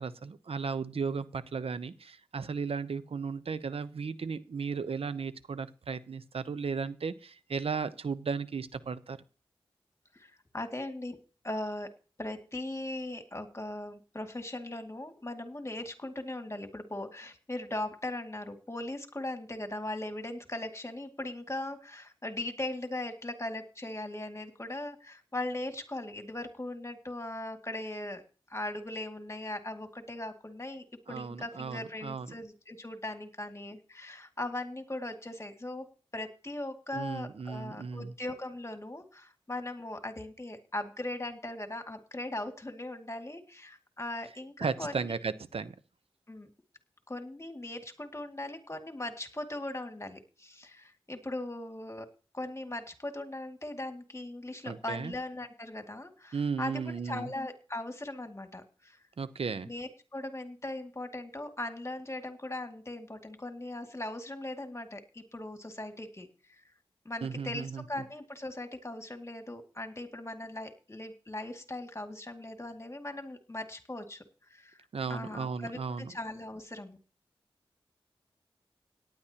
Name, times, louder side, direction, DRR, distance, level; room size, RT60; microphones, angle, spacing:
voice 1, 0.0-9.2 31.1-32.3 36.9-38.1 44.6-45.7 54.6-55.1 56.3-57.3 59.2-59.7 67.2-67.8 74.9-76.1, right 5 dB, 70° right, 14 dB, 0.8 m, -35 dB
voice 2, 10.1-11.2 11.4-28.2 28.5-45.1 46.3-46.5 47.1-52.1 52.3-59.0 59.6-66.6 67.0-74.2 74.5-77.0, left 1 dB, 30° left, 6 dB, 2.2 m, -39 dB
18.0 x 10.5 x 2.9 m, 0.37 s
cardioid pair, 40°, 10 cm